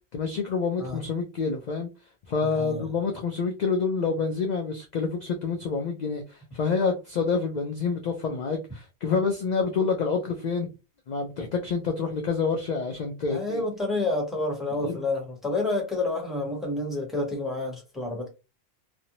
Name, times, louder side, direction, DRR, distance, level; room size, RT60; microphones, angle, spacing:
voice 1, 0.1-1.9 2.3-10.7 11.1-13.6 14.8-15.0, left 5 dB, 55° left, 0.5 m, -27 dB
voice 2, 2.4-2.8 13.3-18.3, left 2 dB, ahead, 0.9 m, -29 dB
2.5 x 2.0 x 2.8 m
omnidirectional pair, 1.1 m